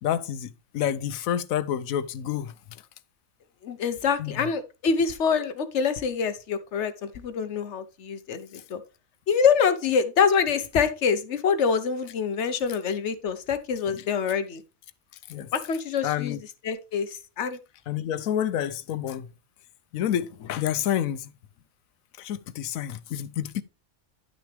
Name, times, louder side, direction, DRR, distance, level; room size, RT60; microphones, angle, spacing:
voice 1, 0.0-2.5 4.2-4.3 13.9-14.0 15.3-15.5 16.0-16.4 17.9-19.3 19.9-21.3 22.2-23.6, left 10 dB, 85° left, 1.1 m, -28 dB
voice 2, 3.6-8.8 9.3-14.6 15.5-16.4 16.6-17.6, left 6 dB, 60° left, 1.1 m, -25 dB
11.0 x 6.2 x 3.3 m
omnidirectional pair, 1.4 m